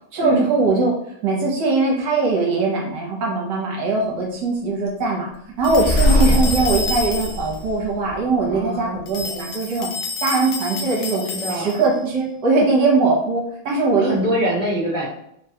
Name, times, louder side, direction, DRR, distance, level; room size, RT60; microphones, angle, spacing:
voice 1, 0.1-0.9 1.2-5.3 5.6-9.9 10.2-11.2 11.5-14.1, right 3 dB, 65° right, -2 dB, 1.4 m, -20 dB
sound 1, 5.6-7.6 9.1-11.9, left 3 dB, 75° left, 1.2 m, -29 dB
sound 2, 5.6-8.6, equal, 50° left, 1.0 m, -21 dB
voice 2, 8.5-9.0 11.3-11.7 14.0-15.1, equal, 20° left, -9 dB, 1.0 m, -24 dB
3.7 x 2.2 x 2.8 m, 0.73 s
omnidirectional pair, 2.2 m